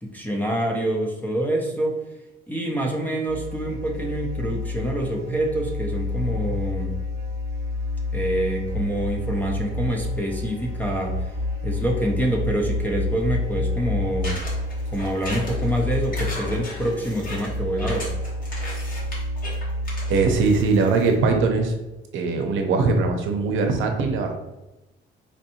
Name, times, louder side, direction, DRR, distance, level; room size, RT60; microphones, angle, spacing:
voice 1, 0.0-2.0 2.5-7.0 8.1-11.3 11.6-14.4 14.9-18.1, right 1 dB, 10° left, 1 dB, 0.5 m, -26 dB
sound 1, 3.3-21.5, left 2 dB, 30° right, 0.7 m, -29 dB
sound 2, 14.2-21.1, left 1 dB, 45° left, 1.2 m, -36 dB
voice 2, 20.1-21.7 22.1-24.3, right 4 dB, 75° right, 4 dB, 0.6 m, -21 dB
4.3 x 2.6 x 2.8 m, 1.0 s
cardioid pair, 135°, 20 cm